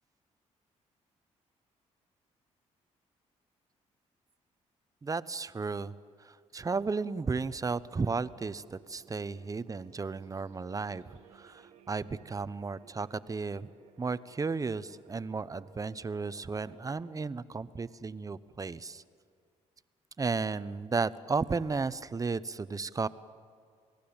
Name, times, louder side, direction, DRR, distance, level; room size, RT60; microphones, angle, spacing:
voice 1, 5.0-5.9 6.2-13.7 14.0-19.0 20.2-23.1, right 4 dB, 25° right, 15 dB, 0.9 m, -34 dB
sound 1, 7.6-17.1, right 7 dB, 85° right, 1.9 m, -60 dB
28.0 x 18.5 x 8.8 m, 2.1 s
cardioid pair, 75°, 13 cm